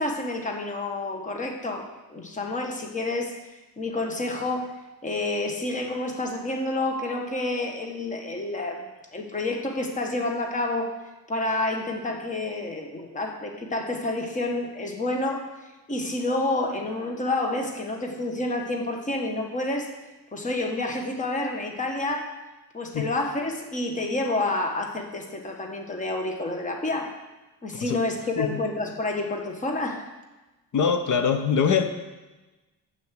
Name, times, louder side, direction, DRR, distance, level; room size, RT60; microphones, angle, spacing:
voice 1, 0.0-10.9 11.3-19.9 20.3-22.4 22.7-27.1 27.6-30.1, left 2 dB, 20° left, 3 dB, 1.3 m, -29 dB
voice 2, 30.7-31.9, left 6 dB, 55° left, 7 dB, 1.1 m, -23 dB
9.4 x 7.8 x 7.6 m, 1.1 s
wide cardioid pair, 180°, 36 cm